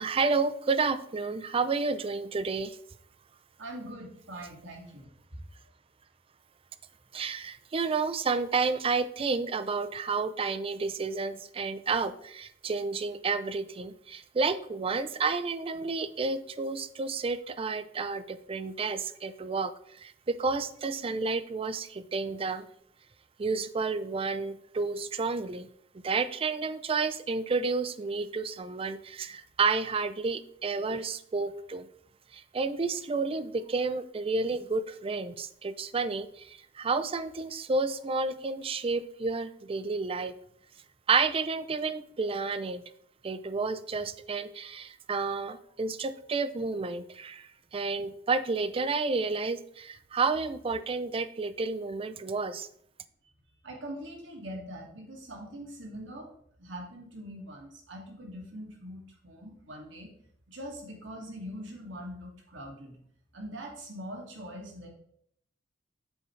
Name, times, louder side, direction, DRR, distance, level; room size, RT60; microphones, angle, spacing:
voice 1, 0.0-2.8 7.1-19.7 20.0-22.7 23.4-25.7 26.0-31.9 32.3-40.3 41.1-42.8 43.2-52.7, right 4 dB, 30° right, 14 dB, 0.4 m, -30 dB
voice 2, 3.6-5.4 53.6-60.1 60.5-63.0 63.3-64.9, equal, 75° right, -1 dB, 2.2 m, -43 dB
8.2 x 7.1 x 3.2 m, 0.69 s
head